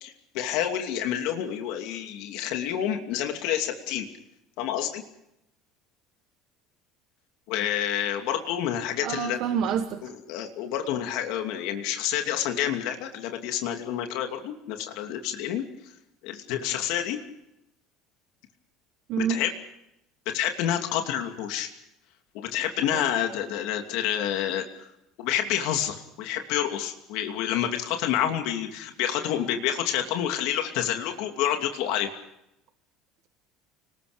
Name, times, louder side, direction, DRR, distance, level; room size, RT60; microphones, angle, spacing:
voice 1, 0.0-4.1 4.6-5.0 7.5-9.4 10.0-15.6 16.2-17.2 19.2-19.5 20.3-21.7 22.3-24.9 25.2-32.1, left 10 dB, 60° left, 4 dB, 2.7 m, -28 dB
voice 2, 9.0-10.1 19.1-19.4 22.9-23.0, right 8 dB, 45° right, 8 dB, 1.2 m, -28 dB
30.0 x 20.0 x 5.2 m, 0.84 s
cardioid pair, 170°, 0 cm